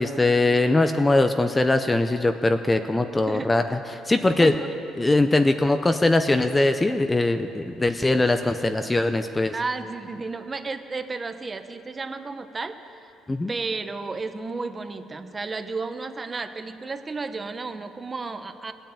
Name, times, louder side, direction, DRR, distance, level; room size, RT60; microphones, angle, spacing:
voice 1, 0.0-4.5 5.0-9.5 13.3-13.5, left 2 dB, 10° left, 8 dB, 0.5 m, -21 dB
voice 2, 2.8-3.7 4.4-4.7 9.5-13.1 13.5-18.7, right 3 dB, 20° right, 9 dB, 0.7 m, -33 dB
17.0 x 8.9 x 8.7 m, 2.8 s
cardioid pair, 140°, 0 cm